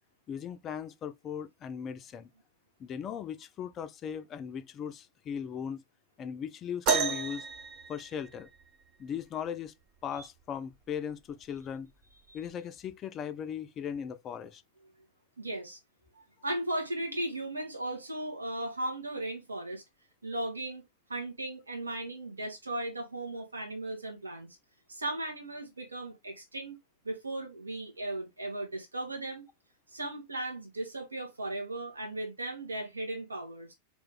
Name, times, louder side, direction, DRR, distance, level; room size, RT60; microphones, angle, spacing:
voice 1, 0.3-2.3 2.8-5.8 6.2-7.5 7.9-8.5 9.0-9.7 10.0-11.9 12.3-14.6, left 8 dB, 30° left, 0.5 m, -38 dB
sound 1, 6.9-8.8 10.4-10.5 11.3-11.5 12.5-12.6, right 6 dB, 40° right, 0.8 m, -31 dB
voice 2, 15.4-15.8 16.1-19.8 20.2-20.8 21.1-24.5 24.9-26.8 27.0-29.4 29.9-33.7, right 1 dB, 75° right, 1.7 m, -37 dB
3.1 x 3.1 x 3.5 m
figure-of-eight pair, 90°, 0 cm